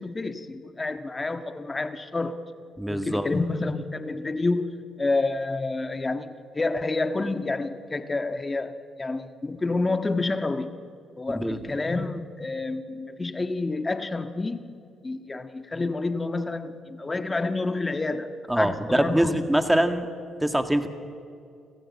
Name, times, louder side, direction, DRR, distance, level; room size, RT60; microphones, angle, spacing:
voice 1, 0.0-2.4 2.9-10.7 11.2-19.4, left 3 dB, 25° left, 9 dB, 1.6 m, -29 dB
voice 2, 2.8-3.3 11.3-11.6 18.5-20.1 20.4-20.9, right 1 dB, 10° right, 7 dB, 1.9 m, -23 dB
25.5 x 14.5 x 8.6 m, 2.3 s
supercardioid pair, 65°, 0 cm